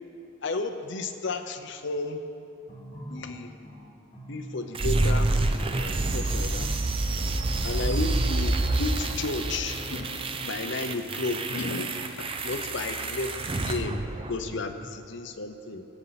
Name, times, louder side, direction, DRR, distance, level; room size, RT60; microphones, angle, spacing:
voice 1, 0.4-2.2 3.1-3.5 4.3-5.3 5.7-6.9 7.6-15.8, left 3 dB, 55° left, 7 dB, 0.7 m, -33 dB
sound 1, 2.7-8.4, right 1 dB, 30° left, 2.0 m, -42 dB
sound 2, 4.7-14.7, right 2 dB, 25° right, 0.5 m, -28 dB
18.0 x 7.8 x 4.1 m, 2.8 s
head